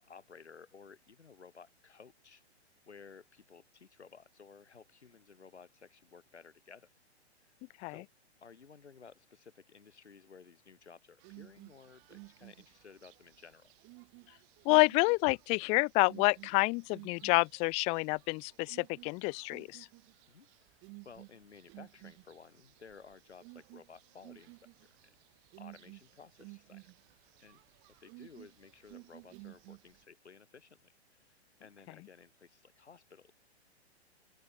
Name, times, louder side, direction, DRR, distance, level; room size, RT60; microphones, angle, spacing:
voice 1, 0.0-2.4 2.9-6.9 7.4-7.5 7.9-8.1 8.4-13.7 20.3-20.5 21.0-25.1 25.6-26.9 27.4-27.6 28.0-33.3, left 5 dB, 85° left, 7.8 m, -56 dB
sound 1, 11.2-30.0, right 34 dB, 35° right, 6.0 m, -55 dB
voice 2, 14.6-19.9, left 28 dB, 20° left, 0.5 m, -28 dB
open air
hypercardioid pair, 130°, 33 cm